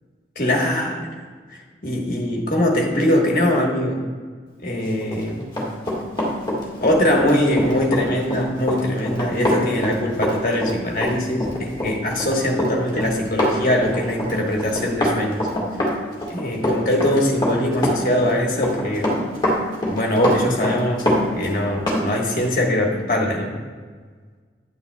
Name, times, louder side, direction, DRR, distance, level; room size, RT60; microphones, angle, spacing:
voice 1, 0.3-1.1 1.8-4.0 4.6-5.5 6.8-15.4 16.3-19.2 19.9-21.0 21.4-23.5, left 1 dB, 50° left, -1 dB, 1.4 m, -22 dB
Run, 5.0-22.1 22.4-22.5, left 1 dB, 25° left, 1.7 m, -24 dB
9.6 x 8.8 x 2.3 m, 1.5 s
head